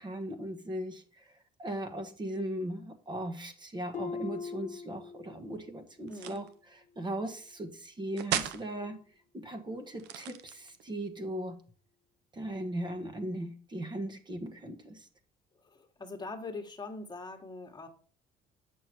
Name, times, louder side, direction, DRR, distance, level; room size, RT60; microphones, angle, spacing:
voice 1, 0.0-1.3 1.6-9.0 9.3-11.6 12.3-15.1, right 1 dB, 25° right, 6 dB, 1.3 m, -38 dB
Harp, 3.9-5.7 6.1-6.5 7.0-7.1, left 5 dB, 45° left, 0.6 m, -41 dB
voice 2, 6.1-6.4 8.7-9.0 15.6-17.9, left 3 dB, 25° left, 4 dB, 1.5 m, -43 dB
sound 1, 6.1-6.5 8.2-8.7 9.9-10.9, right 10 dB, 90° right, 0.8 m, -35 dB
7.9 x 6.5 x 4.4 m, 0.43 s
cardioid pair, 110°, 17 cm